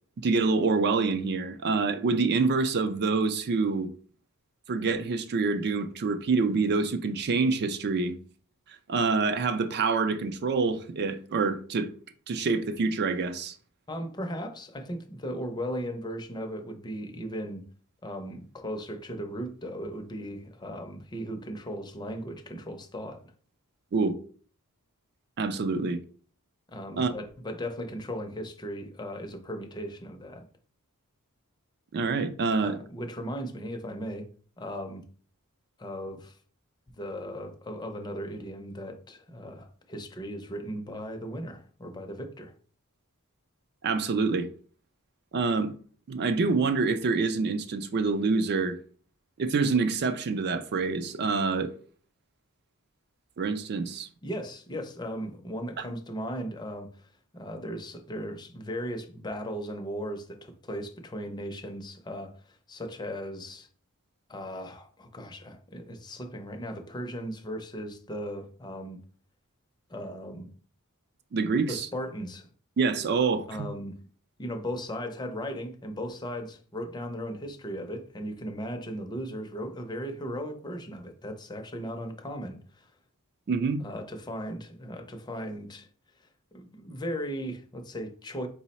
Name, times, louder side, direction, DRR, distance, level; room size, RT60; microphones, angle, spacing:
voice 1, 0.2-3.9 4.7-8.2 8.9-11.9 12.3-13.6 23.9-24.1 25.4-26.0 27.0-27.1 31.9-32.8 43.8-44.5 45.3-45.7 46.1-48.8 49.4-51.7 53.4-54.1 71.3-71.9 72.8-73.7 83.5-83.8, right 4 dB, 50° right, 0.4 m, -26 dB
voice 2, 13.9-17.6 18.0-23.2 26.7-30.4 32.6-34.3 34.6-35.0 35.8-36.3 37.0-42.5 54.2-57.1 57.3-63.7 64.3-69.0 69.9-70.5 71.7-72.5 73.5-74.0 74.4-82.9 83.8-85.9 86.5-88.5, equal, 20° left, 0.5 m, -37 dB
4.6 x 2.0 x 4.0 m
head